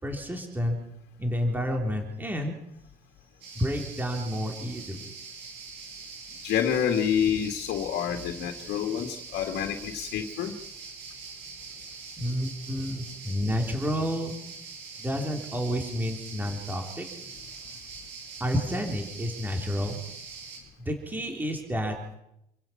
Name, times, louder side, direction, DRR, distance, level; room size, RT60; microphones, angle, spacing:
voice 1, 0.0-0.8 1.2-2.6 3.5-5.1 12.2-14.4 15.0-17.1 18.4-20.0 20.8-22.0, equal, 10° right, 2 dB, 3.6 m, -30 dB
sound 1, 3.4-20.6, right 5 dB, 85° right, 7.0 m, -43 dB
voice 2, 6.4-10.5, left 9 dB, 80° left, 4 dB, 2.2 m, -28 dB
28.0 x 16.0 x 5.9 m, 0.82 s
cardioid pair, 110°, 17 cm